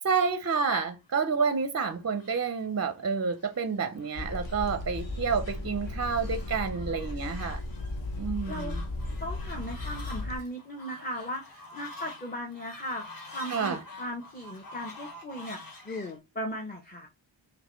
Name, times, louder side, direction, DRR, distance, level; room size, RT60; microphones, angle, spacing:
voice 1, 0.0-7.6 8.2-8.8 13.5-13.8, right 5 dB, 35° right, 0.5 m, -29 dB
Fowl, 1.3-16.2, left 2 dB, 45° left, 1.5 m, -48 dB
sound 1, 4.1-10.4, left 2 dB, 65° left, 1.1 m, -35 dB
voice 2, 9.2-13.0 13.3-15.6 15.8-17.1, equal, 20° left, 0.7 m, -37 dB
5.6 x 2.6 x 3.0 m
wide cardioid pair, 100°, 48 cm